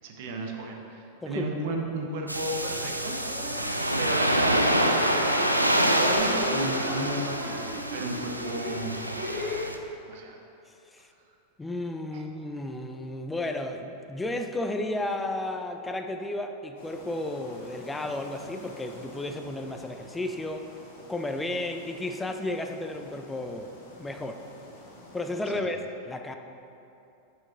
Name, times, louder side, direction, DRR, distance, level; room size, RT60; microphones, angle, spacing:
voice 1, 0.0-3.2 3.5-3.6 4.0-5.4 6.0-7.6 7.9-9.1 9.4-9.7 10.1-10.4 12.1-12.2 25.5-25.7, right 2 dB, 50° right, 1 dB, 0.7 m, -34 dB
sound 1, 2.3-9.8, equal, 85° right, 0.3 m, -26 dB
sound 2, 3.2-9.6, left 1 dB, 15° right, 1.4 m, -37 dB
voice 2, 11.6-20.7 21.1-23.7 24.0-24.4 25.1-25.8 26.0-26.3, left 1 dB, 10° left, 5 dB, 0.4 m, -33 dB
sound 3, 16.8-25.5, left 1 dB, 55° left, 1.4 m, -49 dB
5.9 x 4.5 x 3.6 m, 2.8 s
figure-of-eight pair, 90°, 0 cm